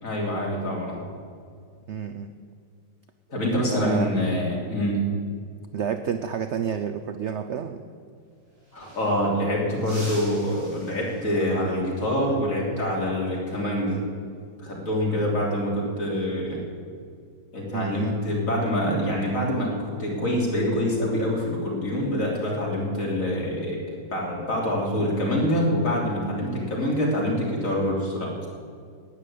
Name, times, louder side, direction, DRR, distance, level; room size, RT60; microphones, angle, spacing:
voice 1, 0.0-1.0 3.3-5.1 8.7-14.0 14.6-16.6 17.5-23.8 24.1-28.3, equal, 45° left, -3 dB, 3.5 m, -25 dB
voice 2, 1.9-2.3 3.7-4.1 5.7-7.8 17.7-18.2, right 7 dB, 75° right, 9 dB, 0.6 m, -29 dB
sound 1, 8.2-8.3 8.5-9.4 9.8-11.6 14.0-14.3 15.7-16.2, right 1 dB, 30° right, 4.1 m, -44 dB
12.0 x 9.2 x 8.4 m, 2.2 s
omnidirectional pair, 1.9 m